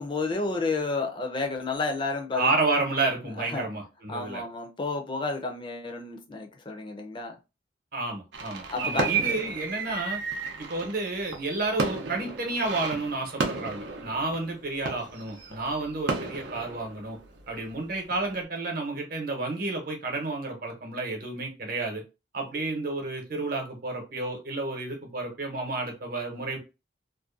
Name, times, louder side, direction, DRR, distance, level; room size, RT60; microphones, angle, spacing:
voice 1, 0.0-2.5 3.4-3.7 4.1-7.4 8.7-9.1, left 3 dB, 30° left, 0.5 m, -31 dB
voice 2, 2.3-4.4 7.9-10.2 10.6-17.2 17.5-22.0 22.3-26.6, right 2 dB, 55° right, 0.8 m, -31 dB
sound 1, 8.3-17.7 18.1-18.3, right 4 dB, 80° right, 0.5 m, -33 dB
2.5 x 2.2 x 2.4 m
head